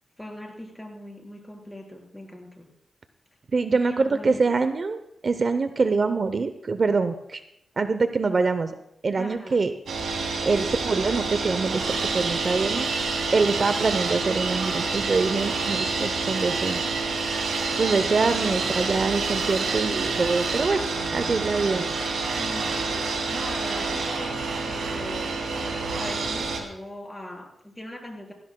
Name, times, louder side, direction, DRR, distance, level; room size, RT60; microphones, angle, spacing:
voice 1, 0.2-2.7 3.8-4.5 9.2-9.6 18.3-18.9 22.4-24.4 24.7-25.3 25.9-28.3, left 1 dB, 10° left, 0 dB, 4.0 m, -40 dB
voice 2, 3.5-7.4 7.8-8.7 9.0-9.7 10.5-12.9 13.3-16.8 17.8-20.8 21.1-21.9, right 4 dB, 50° right, 10 dB, 0.7 m, -24 dB
sound 1, 9.9-26.6, right 4 dB, 90° right, 2.9 m, -28 dB
19.0 x 15.5 x 2.3 m, 0.80 s
wide cardioid pair, 90°, 0 cm